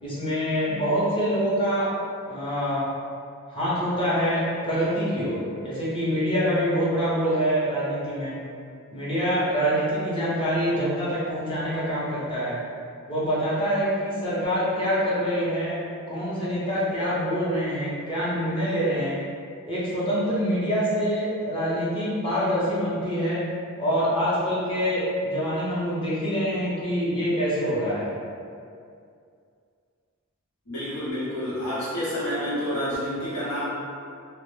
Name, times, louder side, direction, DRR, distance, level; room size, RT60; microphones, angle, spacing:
voice 1, 0.0-1.9 2.3-2.8 3.5-8.4 8.9-12.6 13.1-15.8 16.1-19.2 19.7-23.4 23.8-28.1, equal, 25° left, -9 dB, 0.7 m, -25 dB
voice 2, 30.7-33.6, equal, 90° left, -10 dB, 1.0 m, -29 dB
2.1 x 2.1 x 3.0 m, 2.4 s
head